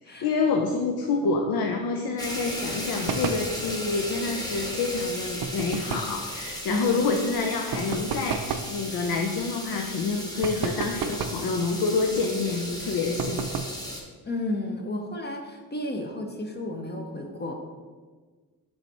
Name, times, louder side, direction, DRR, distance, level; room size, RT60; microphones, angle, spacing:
voice 1, 0.0-13.5, left 4 dB, 80° left, 2 dB, 0.6 m, -27 dB
sound 1, 2.2-14.0, equal, 10° left, 1.0 m, -36 dB
sound 2, 3.1-3.5 5.4-6.2 7.7-8.7 10.4-11.5 13.2-13.8, right 6 dB, 75° right, 0.5 m, -31 dB
voice 2, 6.7-7.1 14.2-17.5, left 1 dB, 30° left, 2 dB, 0.7 m, -32 dB
7.0 x 3.4 x 4.2 m, 1.4 s
cardioid pair, 110°, 36 cm